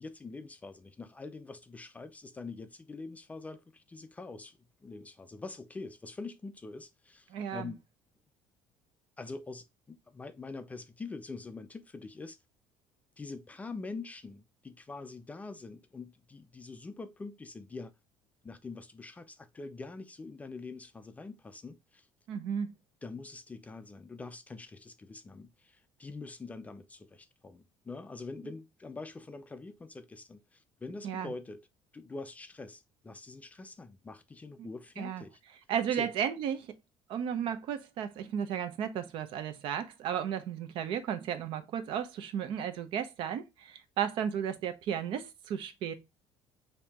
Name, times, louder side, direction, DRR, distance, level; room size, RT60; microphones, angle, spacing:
voice 1, 0.0-7.8 9.2-12.4 13.2-17.9 18.4-22.1 23.0-31.7 31.9-35.4 35.9-36.1, left 3 dB, 15° left, 0.3 m, -44 dB
voice 2, 7.3-7.7 22.3-22.7 31.0-31.3 34.6-34.7 35.0-35.2 35.7-36.7 37.1-45.9, right 8 dB, 60° right, 0.7 m, -34 dB
4.4 x 2.7 x 3.4 m
cardioid pair, 140°, 10 cm